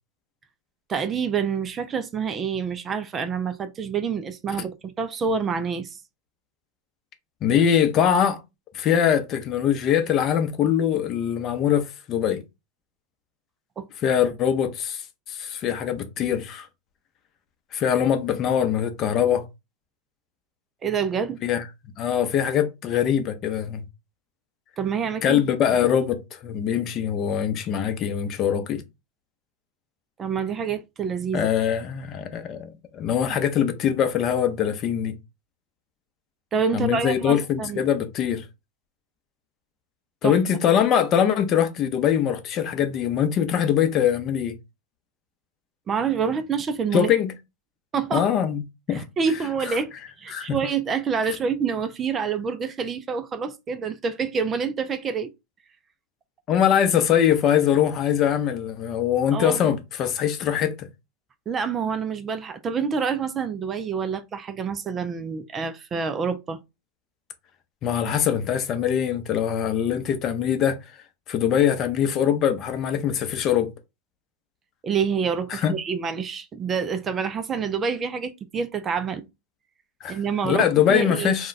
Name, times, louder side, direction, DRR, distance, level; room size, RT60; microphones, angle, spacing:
voice 1, 0.9-6.0 13.8-13.9 20.8-21.4 24.8-25.4 30.2-31.5 36.5-37.8 40.2-40.4 45.9-47.1 47.9-48.2 48.9-49.9 50.2-55.3 59.3-59.7 61.5-66.6 74.8-79.2 80.1-81.3, right 6 dB, 30° right, 0.4 m, -27 dB
voice 2, 7.4-8.4 8.7-12.4 14.0-15.0 15.3-16.7 17.7-19.4 21.4-21.6 22.0-23.8 25.2-28.8 31.3-35.2 36.7-38.4 40.2-44.6 46.9-47.3 48.1-48.6 48.9-49.0 50.3-50.6 56.5-60.9 67.8-70.8 71.3-73.7 75.5-75.7 80.0-80.2 80.4-81.5, left 9 dB, 40° left, 0.6 m, -22 dB
2.3 x 2.2 x 3.9 m
hypercardioid pair, 105°, 0 cm